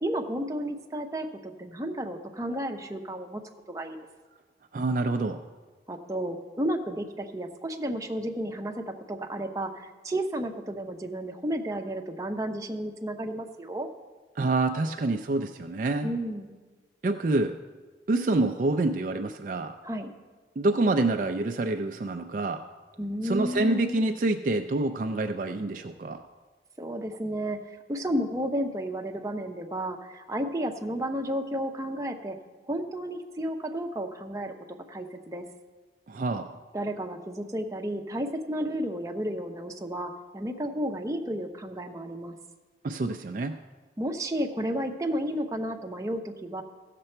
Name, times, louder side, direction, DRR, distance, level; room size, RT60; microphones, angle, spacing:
voice 1, 0.0-3.4 3.7-4.0 5.9-13.9 16.0-16.5 19.8-20.1 23.0-24.2 26.8-27.6 27.9-32.4 32.7-34.5 34.9-35.5 36.7-42.4 44.0-46.6, right 1 dB, 20° right, 2 dB, 0.7 m, -32 dB
voice 2, 4.7-5.4 14.4-16.1 17.0-17.6 18.1-19.7 20.6-22.6 23.2-26.2 36.1-36.6 42.8-43.6, right 2 dB, 45° right, 5 dB, 0.4 m, -27 dB
15.5 x 6.8 x 4.4 m, 1.3 s
head